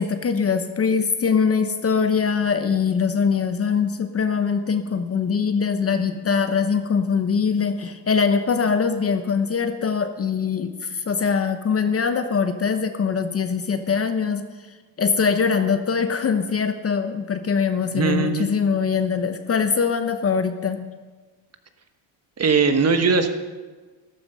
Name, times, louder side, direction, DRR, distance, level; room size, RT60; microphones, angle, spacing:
voice 1, 0.0-14.4 15.0-20.9, left 6 dB, 30° left, 8 dB, 0.9 m, -22 dB
voice 2, 17.9-18.5 22.4-23.4, right 4 dB, 30° right, 8 dB, 1.2 m, -20 dB
13.5 x 12.5 x 5.4 m, 1.3 s
cardioid pair, 120°, 49 cm